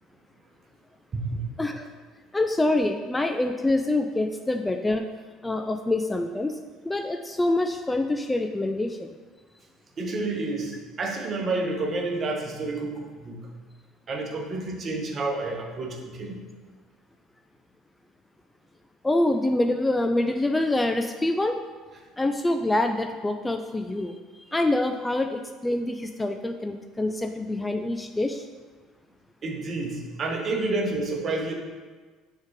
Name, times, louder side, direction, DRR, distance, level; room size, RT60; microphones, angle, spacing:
voice 1, 1.1-1.4 10.0-13.5 14.1-16.4 29.4-31.5, right 2 dB, 40° right, 2 dB, 1.1 m, -29 dB
voice 2, 2.3-5.1 5.4-6.6 6.8-9.1 19.0-21.6 22.2-28.5, left 2 dB, 15° left, 6 dB, 0.4 m, -26 dB
6.2 x 3.7 x 4.8 m, 1.4 s
hypercardioid pair, 60°, 0 cm